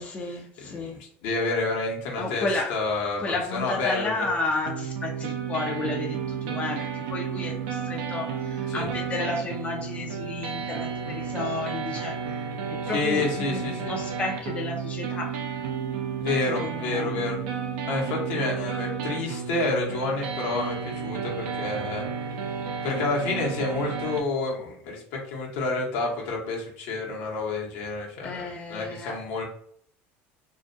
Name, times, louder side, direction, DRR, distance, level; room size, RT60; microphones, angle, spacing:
voice 1, 0.0-1.0 2.2-2.7 3.2-12.4 12.7-15.4 16.6-17.1 28.2-29.2, left 3 dB, 25° left, 1 dB, 0.4 m, -32 dB
voice 2, 0.6-3.2 3.5-4.3 8.7-8.9 12.9-14.0 16.2-17.4 17.9-22.0 22.8-29.4, left 3 dB, 70° left, -1 dB, 0.9 m, -29 dB
sound 1, 4.7-24.2, right 6 dB, 85° right, 0.4 m, -32 dB
2.4 x 2.1 x 2.5 m, 0.63 s
supercardioid pair, 120°, 6 cm